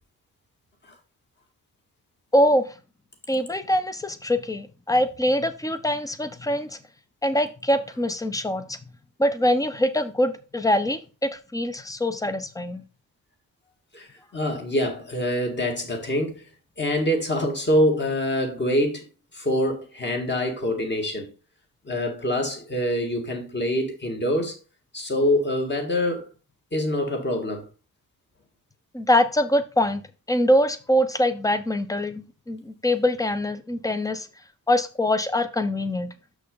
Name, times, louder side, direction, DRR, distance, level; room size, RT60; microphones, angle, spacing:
voice 1, 2.3-2.7 3.3-6.8 7.2-8.8 9.2-12.8 28.9-30.0 30.3-34.3 34.7-36.1, left 1 dB, 10° left, 0.7 m, -23 dB
voice 2, 13.9-16.5 16.8-19.0 19.3-21.3 21.8-24.6 24.9-26.3 26.7-27.7, left 1 dB, 30° left, 1.9 m, -25 dB
6.9 x 6.1 x 3.8 m
wide cardioid pair, 155°, 36 cm